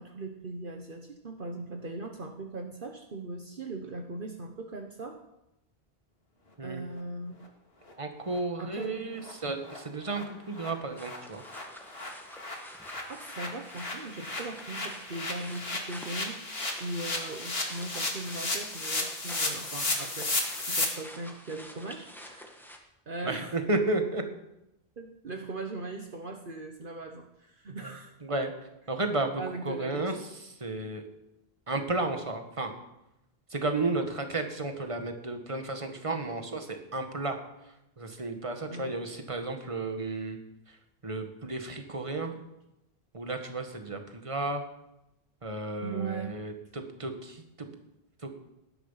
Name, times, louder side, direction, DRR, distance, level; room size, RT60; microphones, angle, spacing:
voice 1, 0.0-5.2 6.6-7.4 8.6-8.9 13.1-20.3 20.6-22.5 23.1-23.6 25.0-28.1 29.4-30.2 38.7-39.0 45.8-46.3, right 2 dB, 55° right, 4 dB, 1.3 m, -39 dB
sound 1, 7.9-8.0 8.3-8.4 8.7-8.9 9.2-9.3 9.6-9.8 10.1-10.2 10.6-10.7 10.9-20.8, left 2 dB, 75° left, 2.8 m, -34 dB
voice 2, 8.0-11.4 23.2-24.2 27.8-28.0 28.2-28.5 28.9-30.2 30.4-31.0 31.7-32.7 33.5-37.4 37.6-40.4 40.7-40.8 41.0-42.4 43.1-44.6 45.4-47.7 48.2-48.3, right 2 dB, 30° right, 5 dB, 1.8 m, -33 dB
sound 2, 11.0-22.8, equal, ahead, 1.9 m, -48 dB
19.0 x 10.5 x 5.8 m, 0.89 s
omnidirectional pair, 1.0 m